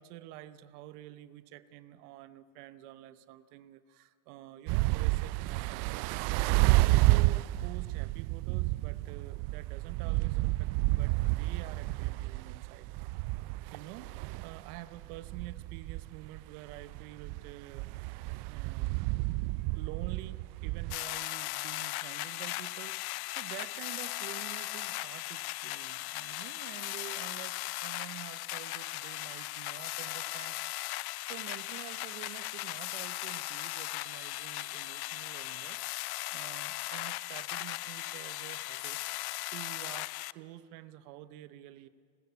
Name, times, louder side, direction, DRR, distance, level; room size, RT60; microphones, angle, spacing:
voice 1, 0.0-5.9 6.4-13.2 13.7-17.9 18.5-30.6 31.2-39.0 39.5-41.9, right 14 dB, 85° right, 14 dB, 0.9 m, -48 dB
sound 1, 4.7-21.0, right 21 dB, 65° right, 0.5 m, -30 dB
sound 2, 20.9-40.3, left 20 dB, 60° left, 0.6 m, -38 dB
29.0 x 13.5 x 8.2 m, 2.2 s
supercardioid pair, 100°, 44 cm